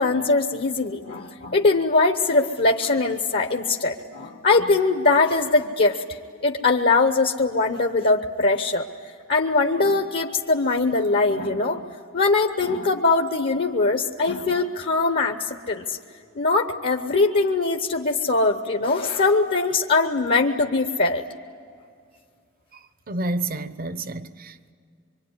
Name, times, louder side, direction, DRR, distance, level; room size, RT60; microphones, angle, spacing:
voice 1, 0.0-6.0 6.4-8.9 9.3-11.8 12.1-16.0 16.3-21.2, left 3 dB, 50° left, 1.0 m, -21 dB
voice 2, 23.1-24.7, right 2 dB, 45° right, 0.9 m, -29 dB
25.0 x 24.0 x 9.7 m
head